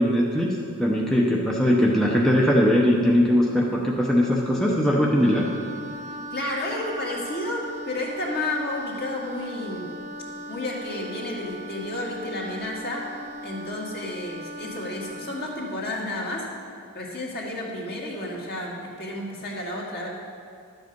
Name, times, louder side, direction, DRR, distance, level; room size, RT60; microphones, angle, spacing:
voice 1, 0.0-5.5, equal, ahead, -3 dB, 0.7 m, -20 dB
Wind instrument woodwind instrument, 5.2-15.9, right 1 dB, 30° right, 0.6 m, -38 dB
voice 2, 6.3-9.9 10.5-13.0 13.4-16.5 16.9-20.1, left 1 dB, 45° left, -3 dB, 2.0 m, -31 dB
12.0 x 7.9 x 5.3 m, 2.3 s
head